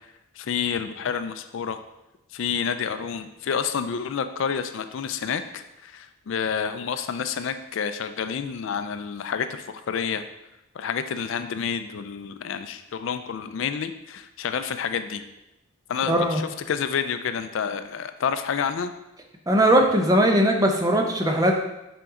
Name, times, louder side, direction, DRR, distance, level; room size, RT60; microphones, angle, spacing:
voice 1, 0.4-1.8 2.3-10.3 10.7-15.2 15.9-18.9, left 7 dB, 60° left, 9 dB, 0.3 m, -29 dB
voice 2, 16.1-16.4 19.5-21.5, right 1 dB, 15° right, 2 dB, 0.6 m, -19 dB
5.6 x 5.2 x 3.7 m, 0.92 s
head